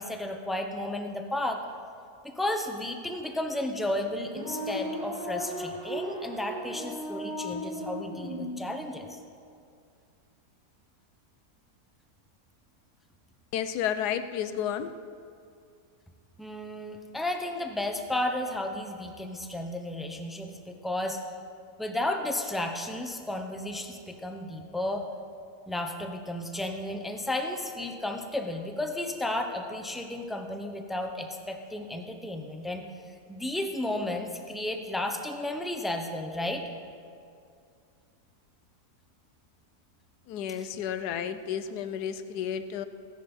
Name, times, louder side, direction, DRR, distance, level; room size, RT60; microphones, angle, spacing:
voice 1, 0.0-1.6 2.2-9.2 16.4-21.2 21.8-25.1 25.7-32.8 33.3-36.7 40.6-40.7, left 1 dB, ahead, 4 dB, 0.3 m, -33 dB
sound 1, 4.2-8.6, equal, 70° right, 3.1 m, -36 dB
voice 2, 13.5-14.9 40.3-42.9, left 9 dB, 80° left, 11 dB, 1.2 m, -31 dB
16.0 x 10.5 x 5.3 m, 2.3 s
omnidirectional pair, 1.7 m